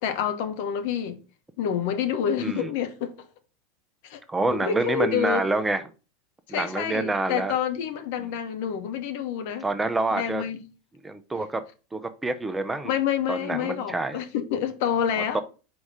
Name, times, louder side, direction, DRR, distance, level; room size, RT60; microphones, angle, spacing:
voice 1, 0.0-1.2 1.6-3.1 4.0-4.2 4.5-5.4 6.5-9.6 10.1-10.6 12.8-15.4, left 8 dB, 60° left, 0.8 m, -28 dB
voice 2, 2.4-2.7 4.3-5.8 6.5-7.6 9.6-10.4 11.0-11.6 11.9-12.9 13.3-14.2 15.2-15.4, right 2 dB, 10° right, 0.6 m, -27 dB
4.8 x 4.1 x 4.8 m
hypercardioid pair, 85°, 0 cm